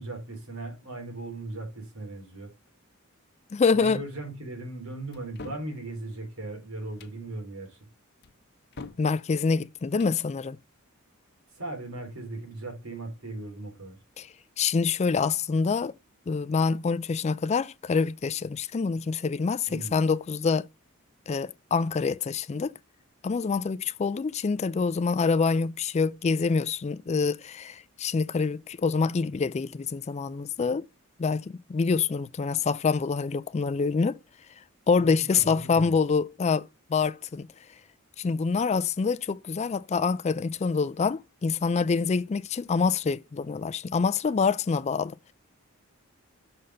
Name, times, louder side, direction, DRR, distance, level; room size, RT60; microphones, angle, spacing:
voice 1, 0.0-2.5 3.6-7.8 11.6-14.0 19.7-20.0 35.0-36.0, right 2 dB, 80° right, 3.7 m, -38 dB
voice 2, 3.5-4.0 9.0-10.6 14.2-14.3 14.6-15.9 16.3-20.7 21.3-22.7 23.2-30.9 31.2-34.2 34.9-37.5 38.2-45.1, left 5 dB, 30° left, 0.3 m, -26 dB
sound 1, 5.1-5.7 6.8-7.2 8.2-9.1 9.8-10.2, left 3 dB, 50° left, 0.9 m, -44 dB
6.4 x 4.1 x 5.5 m
head